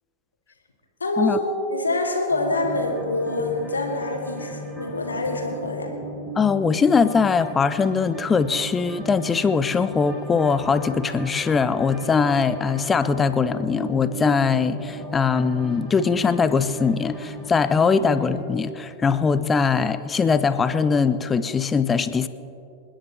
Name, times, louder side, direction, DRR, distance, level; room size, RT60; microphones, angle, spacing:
voice 1, 1.0-1.4 1.7-5.9, left 2 dB, 75° left, 2 dB, 2.1 m, -26 dB
sound 1, 2.3-18.4, equal, 15° right, 3.2 m, -36 dB
voice 2, 6.4-22.3, left 5 dB, 20° left, 13 dB, 0.6 m, -21 dB
28.0 x 10.0 x 3.3 m, 2.6 s
figure-of-eight pair, 90°, 0 cm